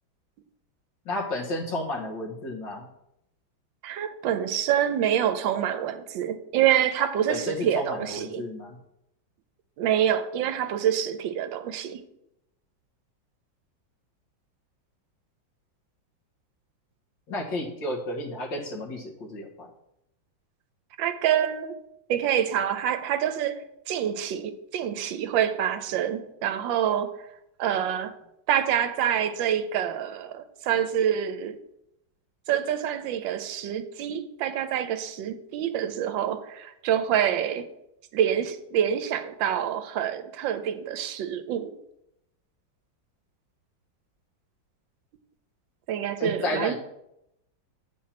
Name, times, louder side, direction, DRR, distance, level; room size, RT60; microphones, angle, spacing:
voice 1, 1.1-2.9 7.3-8.8 17.3-19.7 46.2-46.7, left 1 dB, 70° left, 2.1 m, -32 dB
voice 2, 3.8-8.4 9.8-12.0 21.0-21.8 22.1-27.1 27.6-28.1 28.5-31.6 32.5-37.7 38.1-41.7 45.9-46.7, right 10 dB, 80° right, 1.3 m, -26 dB
8.5 x 4.6 x 5.8 m
omnidirectional pair, 2.1 m